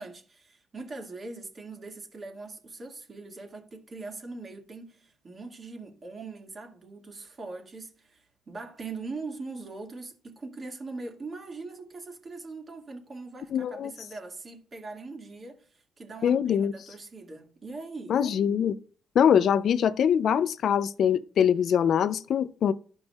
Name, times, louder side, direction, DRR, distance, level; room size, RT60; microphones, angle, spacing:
voice 1, 0.0-18.2, right 3 dB, 35° right, 1.9 m, -41 dB
voice 2, 13.5-13.9 16.2-16.7 18.1-18.8 19.2-22.7, left 8 dB, 65° left, 0.4 m, -23 dB
12.0 x 5.3 x 2.3 m
cardioid pair, 90°, 0 cm